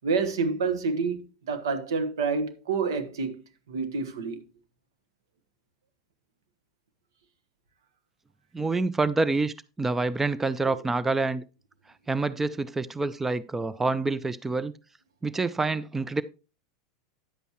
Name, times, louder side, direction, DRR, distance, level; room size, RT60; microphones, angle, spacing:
voice 1, 0.0-4.4, right 4 dB, 75° right, 1.4 m, -28 dB
voice 2, 8.5-11.4 12.1-14.7 15.2-16.2, right 3 dB, 10° right, 0.4 m, -27 dB
10.0 x 8.1 x 3.0 m
hypercardioid pair, 95°, 2 cm